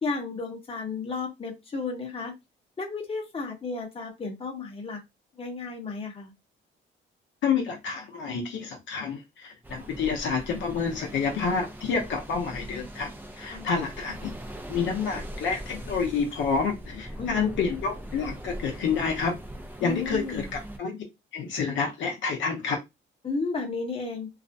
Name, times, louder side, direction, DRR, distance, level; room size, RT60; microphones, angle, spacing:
voice 1, 0.0-2.3 2.8-5.0 5.3-6.3 13.5-13.7 17.2-17.5 19.8-20.5 23.2-24.3, left 4 dB, 30° left, 1 dB, 0.9 m, -33 dB
voice 2, 7.4-14.3 14.7-19.4 19.8-21.0 21.3-22.8, left 5 dB, 70° left, 1 dB, 0.6 m, -29 dB
sound 1, 9.6-20.8, right 1 dB, 10° right, 0.5 m, -41 dB
2.4 x 2.0 x 2.6 m, 0.21 s
cardioid pair, 90°, 20 cm